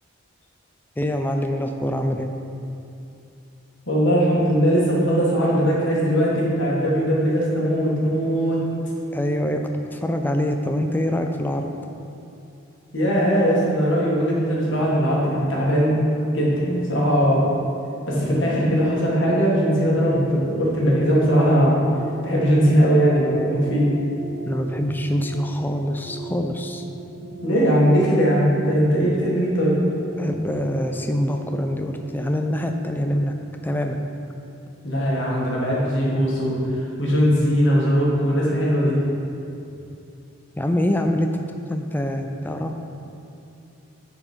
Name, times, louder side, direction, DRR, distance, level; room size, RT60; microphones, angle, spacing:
voice 1, 1.0-2.3 9.1-9.6 9.9-11.8 24.5-26.9 30.2-33.3 33.6-34.0 40.6-41.4 41.7-42.8, left 1 dB, 10° left, 5 dB, 0.4 m, -24 dB
voice 2, 3.9-8.6 12.9-16.0 16.3-17.4 18.1-21.8 22.2-23.9 27.4-29.8 34.8-39.0, equal, 60° left, -5 dB, 1.9 m, -20 dB
sound 1, 19.1-33.0, right 4 dB, 45° right, 1.7 m, -39 dB
9.9 x 4.7 x 4.4 m, 2.7 s
head